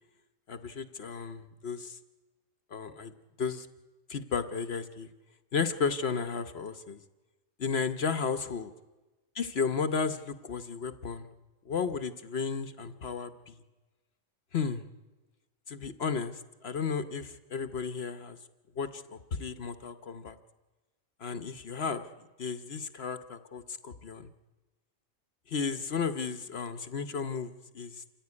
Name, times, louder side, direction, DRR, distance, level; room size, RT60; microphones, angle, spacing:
voice 1, 0.5-2.0 2.7-3.1 3.4-3.7 4.1-5.1 5.5-7.0 7.6-8.7 9.3-11.3 11.7-13.6 14.5-14.8 15.7-18.4 18.8-20.4 21.2-22.1 22.4-24.3 25.5-28.0, left 5 dB, 55° left, 10 dB, 1.1 m, -33 dB
27.5 x 15.0 x 9.6 m, 1.2 s
omnidirectional pair, 1.4 m